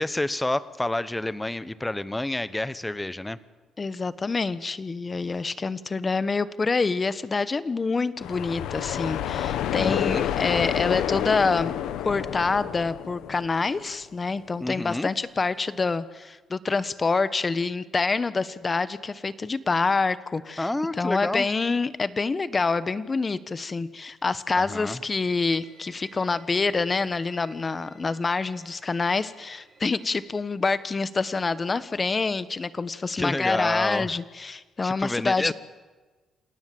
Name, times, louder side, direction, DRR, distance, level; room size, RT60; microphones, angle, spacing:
voice 1, 0.0-3.4 9.7-10.2 14.6-15.1 20.6-21.5 24.6-25.0 33.1-34.2 34.8-35.5, left 1 dB, 10° left, 15 dB, 1.1 m, -29 dB
voice 2, 3.8-11.7 12.0-20.7 21.0-35.5, left 4 dB, 30° left, 15 dB, 1.2 m, -26 dB
sound 1, 8.2-13.9, left 10 dB, 85° left, 1.3 m, -29 dB
Bowed string instrument, 25.2-30.3, right 4 dB, 45° right, 7.2 m, -55 dB
28.5 x 18.0 x 7.9 m, 1.3 s
cardioid pair, 90°, 0 cm